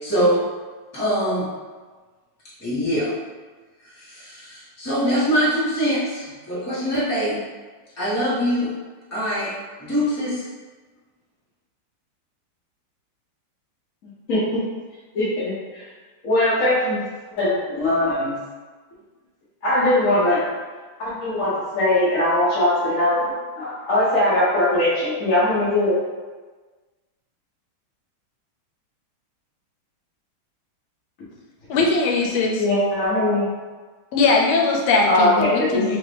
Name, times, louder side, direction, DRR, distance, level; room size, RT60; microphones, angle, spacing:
voice 1, 0.0-0.4 0.9-1.5 2.6-3.1 3.9-7.4 8.0-8.7 9.1-9.5 9.8-10.4, equal, 10° left, -11 dB, 1.0 m, -23 dB
voice 2, 14.3-14.6 15.1-15.9 16.2-17.0 17.4-18.4 19.6-20.4 21.0-25.9 32.6-33.5 35.1-36.0, left 1 dB, 60° left, -9 dB, 0.9 m, -21 dB
voice 3, 31.7-32.6 34.1-36.0, left 3 dB, 85° left, 0 dB, 1.5 m, -20 dB
3.7 x 2.5 x 3.3 m, 1.4 s
omnidirectional pair, 2.3 m